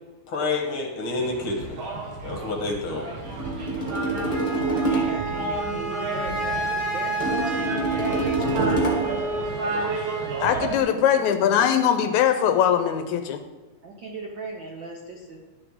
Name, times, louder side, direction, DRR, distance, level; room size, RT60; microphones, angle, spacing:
voice 1, 0.3-1.7 2.2-3.0, left 3 dB, 55° left, 1 dB, 1.8 m, -28 dB
sound 1, 1.1-10.8, right 2 dB, 50° right, 1.9 m, -32 dB
sound 2, 3.2-5.3 7.2-9.2, right 2 dB, 15° left, 1.5 m, -26 dB
Wind instrument woodwind instrument, 4.3-10.6, right 3 dB, 15° right, 0.8 m, -30 dB
voice 2, 4.5-9.1 10.9-11.7 13.8-15.4, right 3 dB, 75° right, 0 dB, 1.0 m, -38 dB
voice 3, 10.4-13.4, left 9 dB, 80° left, 8 dB, 1.9 m, -21 dB
12.0 x 7.1 x 3.6 m, 1.3 s
omnidirectional pair, 3.5 m